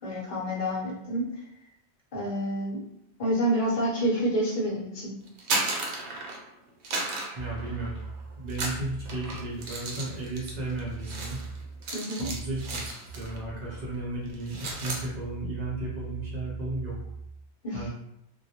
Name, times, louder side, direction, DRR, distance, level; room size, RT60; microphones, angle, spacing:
voice 1, 0.0-1.3 2.1-2.8 3.2-5.1 11.9-12.3 17.6-17.9, right 1 dB, 50° left, -5 dB, 0.9 m, -28 dB
sound 1, 5.3-6.5 6.8-8.1 8.5-13.4 13.7-13.9 14.3-15.1, right 2 dB, 75° right, 0.9 m, -34 dB
voice 2, 7.4-8.0 8.4-11.4 12.2-17.0 17.7-17.9, right 2 dB, 50° right, -5 dB, 0.6 m, -34 dB
2.2 x 2.1 x 2.7 m, 0.80 s
omnidirectional pair, 1.2 m